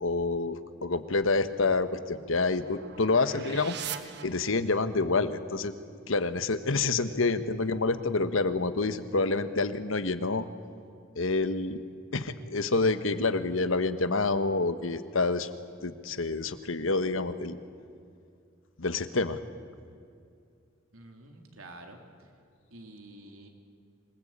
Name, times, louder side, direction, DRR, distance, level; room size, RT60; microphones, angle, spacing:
voice 1, 0.0-3.7 4.2-5.7 6.1-10.5 11.2-11.8 12.1-15.5 15.8-17.6 18.8-19.4, left 3 dB, 75° left, 11 dB, 1.3 m, -28 dB
sound 1, 1.6-5.0, right 8 dB, 55° right, 1.2 m, -43 dB
voice 2, 20.9-22.0 22.7-23.5, right 2 dB, 85° right, 3 dB, 3.3 m, -48 dB
26.0 x 19.5 x 8.8 m, 2.4 s
head